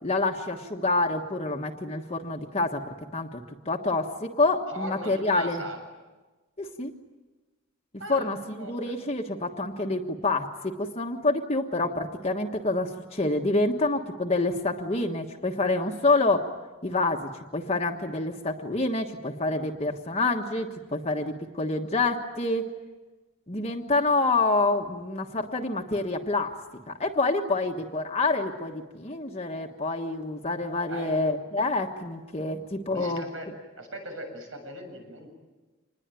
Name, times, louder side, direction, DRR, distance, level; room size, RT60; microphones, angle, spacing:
voice 1, 0.0-2.8 3.1-3.4 3.6-5.6 6.6-6.9 8.1-16.5 16.8-22.7 23.5-26.5 26.9-33.3, left 2 dB, 30° left, 1 dB, 1.3 m, -27 dB
voice 2, 4.7-5.8 8.0-8.3 8.6-8.9 29.1-29.2 30.9-31.5 32.9-35.3, right 1 dB, 75° right, 4 dB, 7.5 m, -39 dB
26.5 x 21.0 x 9.1 m, 1.2 s
head